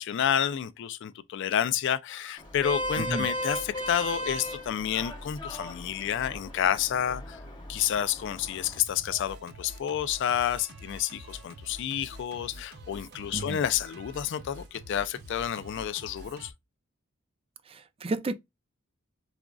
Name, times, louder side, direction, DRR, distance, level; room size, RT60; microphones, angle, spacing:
voice 1, 0.0-7.4 7.7-16.5, left 9 dB, 60° left, 0.3 m, -30 dB
Vehicle horn car horn honking, 2.4-8.8, equal, 20° left, 1.0 m, -36 dB
voice 2, 3.0-3.3 13.3-13.6 17.7-18.3, right 3 dB, 25° right, 0.4 m, -32 dB
Singing, 8.2-16.5, right 1 dB, 55° right, 0.8 m, -47 dB
4.9 x 2.4 x 2.2 m
head